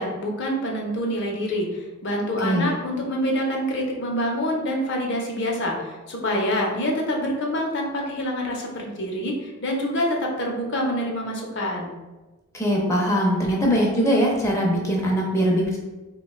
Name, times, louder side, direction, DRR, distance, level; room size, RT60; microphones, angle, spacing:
voice 1, 0.0-11.9, equal, 55° left, 0 dB, 0.6 m, -26 dB
voice 2, 2.4-2.7 12.5-15.8, equal, 15° left, -2 dB, 0.6 m, -21 dB
4.1 x 2.2 x 2.3 m, 1.2 s
head